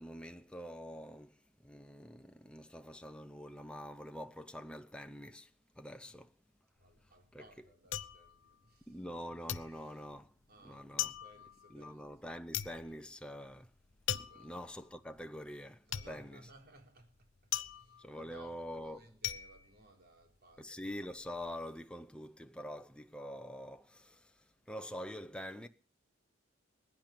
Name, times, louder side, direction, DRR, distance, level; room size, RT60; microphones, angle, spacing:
voice 1, 0.0-6.3 7.3-7.4 8.9-10.3 10.6-11.1 11.7-13.7 14.1-16.4 18.0-19.0 20.6-25.7, equal, 5° left, 0.7 m, -46 dB
sound 1, 6.8-9.2 9.5-20.6 20.9-21.5, left 11 dB, 65° left, 0.9 m, -41 dB
voice 2, 6.8-9.4 9.7-10.1 10.5-12.1 14.2-14.6 15.9-21.0, right 1 dB, 50° right, 4.2 m, -61 dB
21.0 x 10.5 x 6.1 m
head